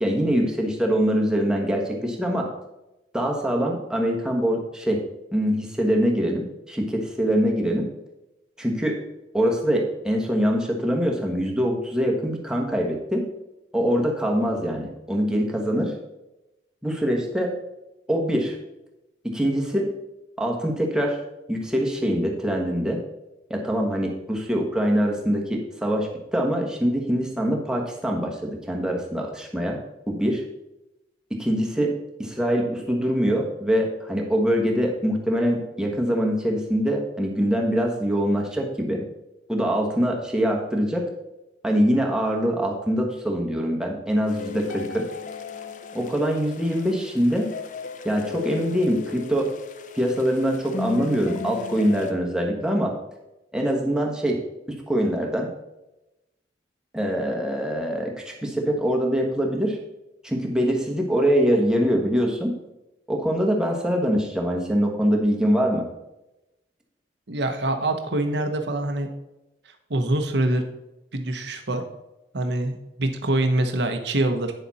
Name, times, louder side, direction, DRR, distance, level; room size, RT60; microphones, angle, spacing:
voice 1, 0.0-2.5 3.1-5.0 5.3-7.9 8.6-9.0 9.3-13.2 13.7-15.9 16.8-17.5 18.1-18.6 19.2-19.9 20.4-21.2 21.5-23.0 23.5-29.8 30.1-30.4 31.3-31.9 32.2-39.0 39.5-41.0 41.6-45.1 45.9-47.5 48.0-49.5 49.9-52.9 53.5-54.4 54.7-55.5 56.9-59.8 60.2-62.5 63.1-65.9, equal, 5° right, 0 dB, 1.3 m, -23 dB
sound 1, 44.3-52.1, left 5 dB, 45° left, 0.6 m, -36 dB
voice 2, 67.3-69.1 69.7-70.6 71.1-71.8 72.3-74.5, right 1 dB, 75° right, 6 dB, 1.0 m, -25 dB
9.0 x 6.9 x 4.1 m, 0.94 s
head